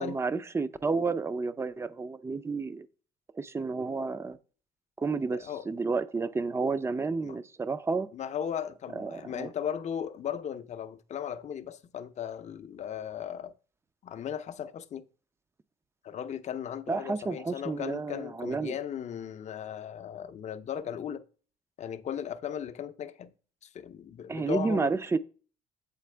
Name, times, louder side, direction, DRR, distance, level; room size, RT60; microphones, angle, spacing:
voice 1, 0.0-2.9 3.3-4.4 5.0-8.1 9.0-9.5 16.9-18.7 24.3-25.2, right 4 dB, 15° right, 0.4 m, -31 dB
voice 2, 8.1-13.5 14.0-15.0 16.0-21.2 21.8-23.3 23.6-24.9, left 8 dB, 45° left, 0.5 m, -37 dB
8.4 x 4.2 x 3.3 m
cardioid pair, 110°, 17 cm